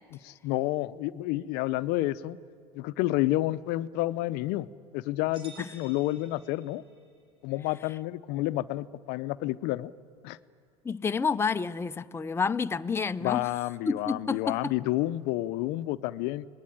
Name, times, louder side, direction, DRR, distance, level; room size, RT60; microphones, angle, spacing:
voice 1, 0.2-2.4 2.8-4.7 4.9-6.8 7.4-9.9 10.2-10.4 13.2-16.5, left 17 dB, 60° left, 0.7 m, -30 dB
sound 1, 5.3-7.1, right 2 dB, 25° right, 7.6 m, -52 dB
voice 2, 10.8-13.4 13.9-14.8, left 5 dB, 15° left, 0.6 m, -29 dB
25.0 x 20.0 x 9.2 m
hypercardioid pair, 85°, 19 cm